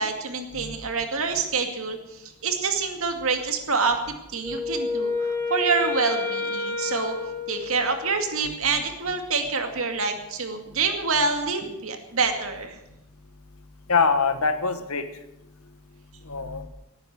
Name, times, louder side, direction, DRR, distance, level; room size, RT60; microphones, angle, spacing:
voice 1, 0.0-7.1 7.5-12.8, right 4 dB, 65° right, 5 dB, 2.3 m, -27 dB
Wind instrument woodwind instrument, 4.4-8.3, left 4 dB, 15° left, 2.1 m, -29 dB
voice 2, 13.9-15.2 16.2-16.7, left 4 dB, 75° left, 9 dB, 1.5 m, -24 dB
18.5 x 9.7 x 7.7 m, 0.89 s
head